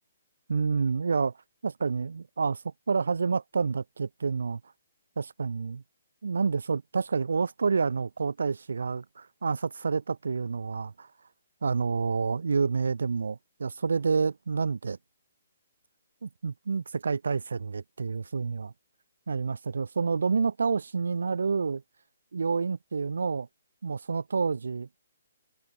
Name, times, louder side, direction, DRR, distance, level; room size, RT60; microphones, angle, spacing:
voice 1, 0.5-1.3 1.6-4.6 5.2-5.8 6.2-11.1 11.6-15.0 16.2-18.7 19.3-21.8 22.3-23.5 23.8-24.9, right 5 dB, 80° right, 2.4 m, -28 dB
hypercardioid pair, 150°, 0 cm